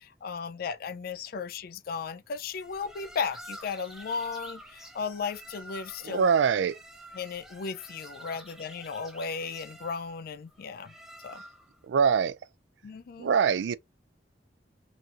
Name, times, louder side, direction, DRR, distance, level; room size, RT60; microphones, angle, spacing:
voice 1, 0.0-6.3 7.1-10.9 11.2-11.4 12.8-13.3, left 5 dB, 55° left, 0.3 m, -35 dB
sound 1, 2.5-11.8, right 1 dB, ahead, 0.6 m, -48 dB
voice 2, 6.0-6.8 11.9-12.4 13.2-13.8, right 6 dB, 70° right, 0.3 m, -23 dB
3.9 x 2.9 x 2.4 m
head